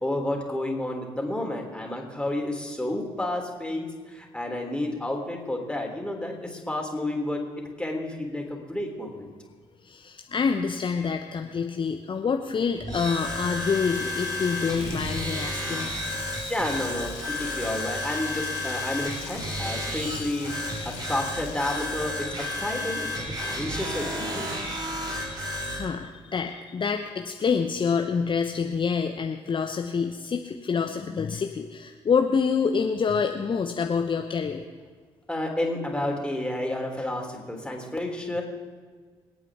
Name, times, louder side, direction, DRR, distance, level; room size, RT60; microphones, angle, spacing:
voice 1, 0.0-7.4 7.8-9.3 16.5-24.7 35.3-38.4, left 1 dB, 5° left, 0 dB, 3.5 m, -31 dB
voice 2, 9.8-15.9 25.2-34.6, left 5 dB, 35° left, 5 dB, 0.9 m, -27 dB
sound 1, 12.8-25.8, left 1 dB, 30° right, 4.4 m, -32 dB
Frying (food), 13.9-21.9, left 10 dB, 70° left, 1.2 m, -43 dB
26.5 x 8.9 x 3.7 m, 1.5 s
hypercardioid pair, 45°, 14 cm